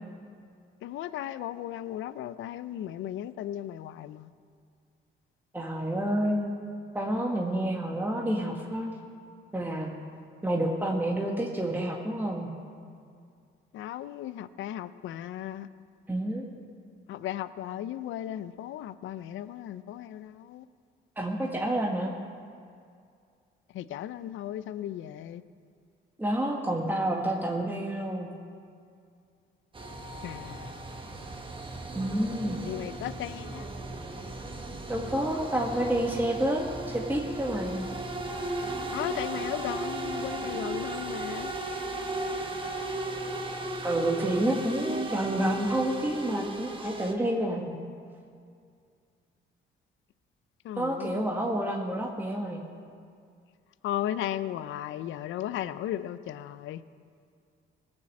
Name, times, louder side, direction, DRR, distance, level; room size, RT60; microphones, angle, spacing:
voice 1, 0.8-4.3 13.7-15.7 17.1-20.7 23.7-25.4 30.2-30.7 32.7-33.7 38.9-41.5 50.6-51.2 53.8-56.8, left 12 dB, 80° left, 15 dB, 0.5 m, -36 dB
voice 2, 5.5-6.5 6.9-8.9 9.5-9.9 10.4-12.5 16.1-16.5 21.2-22.1 26.2-28.3 31.9-32.6 34.9-37.9 43.8-47.7 50.8-52.6, right 1 dB, 10° right, -1 dB, 1.4 m, -29 dB
sound 1, 29.7-47.1, right 2 dB, 25° right, 1.3 m, -36 dB
Wind instrument woodwind instrument, 38.1-43.8, right 1 dB, 10° left, 0.9 m, -45 dB
18.0 x 6.2 x 7.7 m, 2.3 s
cardioid pair, 90°, 20 cm